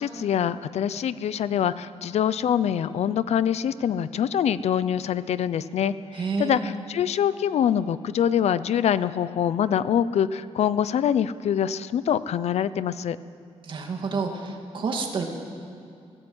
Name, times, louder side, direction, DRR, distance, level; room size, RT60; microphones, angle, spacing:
voice 1, 0.0-13.2, left 9 dB, 75° left, 15 dB, 0.7 m, -24 dB
voice 2, 6.1-6.7 13.6-15.2, right 4 dB, 45° right, 2 dB, 2.5 m, -29 dB
21.0 x 17.5 x 8.1 m, 2.5 s
wide cardioid pair, 170°, 11 cm